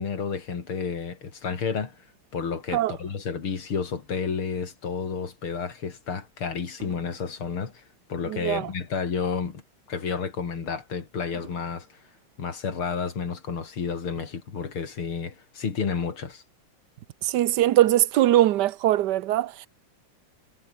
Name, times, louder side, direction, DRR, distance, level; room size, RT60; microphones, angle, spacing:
voice 1, 0.0-1.9 2.3-7.8 8.1-9.6 9.9-11.9 12.4-16.4, left 5 dB, 80° left, 3.7 m, -31 dB
Fireworks, 1.5-4.1 4.7-4.9 6.8-9.3 9.7-9.8 11.3-13.2 13.9-14.0, right 3 dB, 50° right, 5.3 m, -54 dB
voice 2, 8.3-8.7 17.2-19.7, right 13 dB, 65° right, 1.2 m, -21 dB
omnidirectional pair, 2.3 m